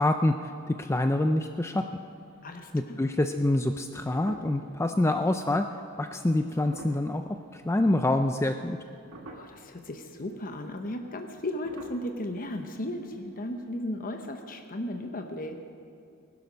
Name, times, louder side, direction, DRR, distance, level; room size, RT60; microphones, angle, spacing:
voice 1, 0.0-1.8 2.7-5.7 6.0-8.8, left 1 dB, 10° left, 7 dB, 0.4 m, -26 dB
sound 1, 2.1-2.8 3.2-3.3 3.7-4.8 5.3-5.4 6.4-7.9 8.3-8.8 9.1-9.8 10.2-10.3 10.5-10.7 11.5-13.1 13.4-13.5, right 2 dB, 80° right, 1.6 m, -47 dB
voice 2, 2.4-3.1 9.3-15.6, left 1 dB, 40° left, 5 dB, 0.9 m, -35 dB
20.0 x 12.0 x 5.2 m, 2.5 s
head